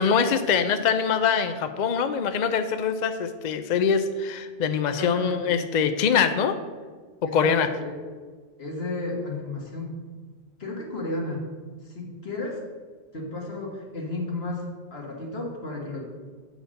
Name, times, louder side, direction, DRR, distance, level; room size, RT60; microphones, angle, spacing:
voice 1, 0.0-6.6 7.2-7.7, left 6 dB, 55° left, 9 dB, 0.5 m, -23 dB
voice 2, 4.9-5.5 7.3-8.0 8.6-10.0 10.6-11.4 11.8-12.6 13.1-16.0, left 2 dB, 75° left, -1 dB, 1.9 m, -33 dB
7.9 x 5.0 x 6.4 m, 1.5 s
omnidirectional pair, 1.1 m